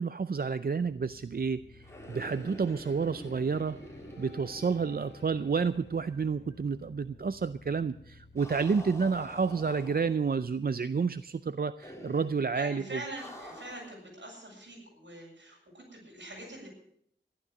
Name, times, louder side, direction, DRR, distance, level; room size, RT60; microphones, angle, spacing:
voice 1, 0.0-3.8 4.2-13.0, right 5 dB, 55° right, 13 dB, 0.5 m, -30 dB
sound 1, 0.7-11.6, left 3 dB, 65° left, 1.8 m, -55 dB
sound 2, 1.8-6.0 6.2-6.3 8.4-10.4 11.8-12.5 13.2-14.0, equal, 15° left, 4.1 m, -47 dB
voice 2, 12.5-16.7, right 1 dB, 75° right, -1 dB, 7.4 m, -43 dB
14.5 x 12.0 x 6.5 m, 0.69 s
wide cardioid pair, 60°, 19 cm